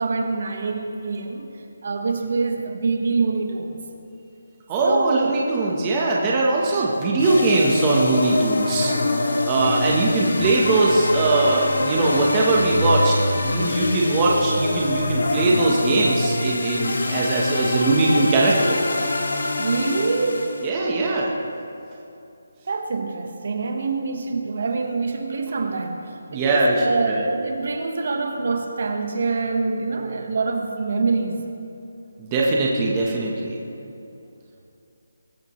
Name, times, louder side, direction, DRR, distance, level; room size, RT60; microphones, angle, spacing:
voice 1, 0.0-1.5 1.8-3.8 4.8-5.4 9.7-10.1 19.6-20.6 22.7-31.5, right 4 dB, 45° right, 5 dB, 1.2 m, -25 dB
voice 2, 4.7-8.9 9.5-18.8 20.6-21.3 26.3-27.2 32.2-33.6, right 2 dB, 15° right, -3 dB, 1.1 m, -21 dB
sound 1, 7.2-20.7, left 2 dB, 80° left, 1.9 m, -24 dB
23.5 x 14.5 x 3.1 m, 2.7 s
hypercardioid pair, 175°, 0 cm